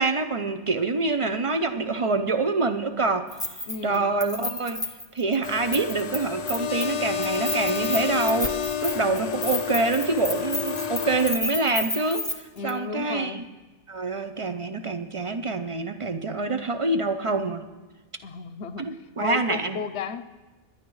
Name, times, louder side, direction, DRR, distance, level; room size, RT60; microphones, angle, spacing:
voice 1, 0.0-3.3 3.8-4.8 5.1-13.4 13.9-17.7 18.8-19.8, right 3 dB, 45° right, 8 dB, 0.4 m, -26 dB
Keys jangling, 3.3-6.2 6.5-6.9 7.2-12.3 12.7-12.8, left 1 dB, 5° left, 1.0 m, -31 dB
voice 2, 3.7-4.2 9.1-9.4 12.6-13.4 18.2-20.2, left 6 dB, 70° left, 12 dB, 0.9 m, -34 dB
sound 1, 5.4-11.4, left 8 dB, 45° left, 0.6 m, -30 dB
22.0 x 10.5 x 3.1 m, 1.2 s
omnidirectional pair, 1.2 m